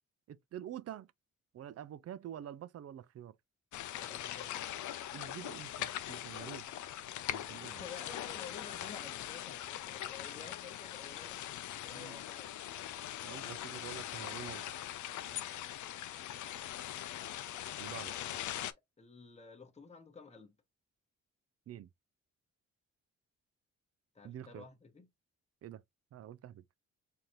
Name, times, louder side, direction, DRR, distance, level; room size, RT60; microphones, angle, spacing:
voice 1, 0.3-1.1 1.5-3.4 5.1-6.7 7.3-7.8 11.9-12.2 13.2-14.7 17.8-18.1 21.7-21.9 24.2-24.7 25.6-25.8 26.1-26.6, right 10 dB, 55° right, 0.4 m, -47 dB
sound 1, 3.7-18.7, left 12 dB, 85° left, 0.5 m, -41 dB
voice 2, 4.0-4.5 7.5-12.7 17.9-20.6 24.1-25.1, left 5 dB, 20° left, 1.0 m, -53 dB
3.8 x 2.8 x 3.1 m
cardioid pair, 70°, 29 cm